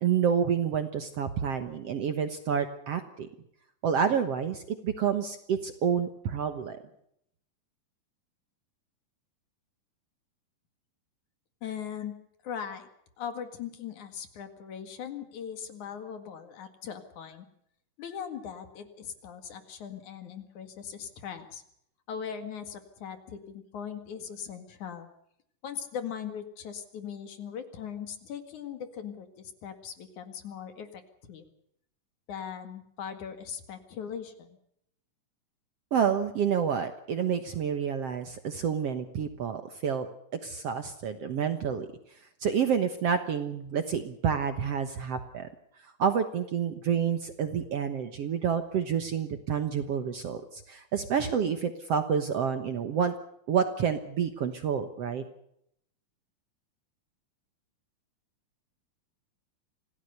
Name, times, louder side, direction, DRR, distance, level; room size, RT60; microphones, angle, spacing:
voice 1, 0.0-3.3 3.8-6.8 35.9-40.1 40.4-41.9 42.4-45.5 45.8-53.1 53.5-55.2, right 7 dB, 60° right, 9 dB, 1.9 m, -29 dB
voice 2, 11.6-12.2 12.4-12.9 13.2-17.4 18.0-21.6 22.1-25.1 25.6-31.0 31.3-31.4 32.3-34.6, left 8 dB, 60° left, 8 dB, 3.3 m, -39 dB
26.5 x 17.5 x 6.7 m, 0.73 s
omnidirectional pair, 4.0 m